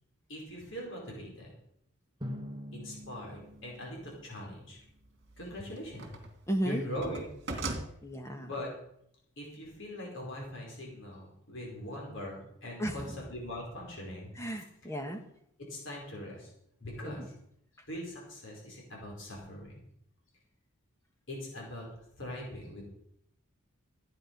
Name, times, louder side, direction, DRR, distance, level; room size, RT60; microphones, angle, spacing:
voice 1, 0.3-1.5 2.7-4.8 5.4-6.2 6.6-7.2 8.4-8.7 9.4-14.3 15.7-16.5 16.8-17.3 17.9-19.8 21.3-21.9 22.2-22.8, left 1 dB, 60° left, -2 dB, 4.6 m, -41 dB
Drum, 2.2-4.9, equal, 20° right, 1.5 m, -44 dB
sound 1, 3.3-3.4 5.1-6.4 6.7-7.9, right 2 dB, 55° right, 2.4 m, -38 dB
voice 2, 6.5-6.8 8.0-8.5 12.8-13.2 14.3-15.2 17.0-17.3, right 1 dB, 15° left, 5 dB, 1.3 m, -34 dB
14.5 x 9.8 x 5.3 m, 0.74 s
head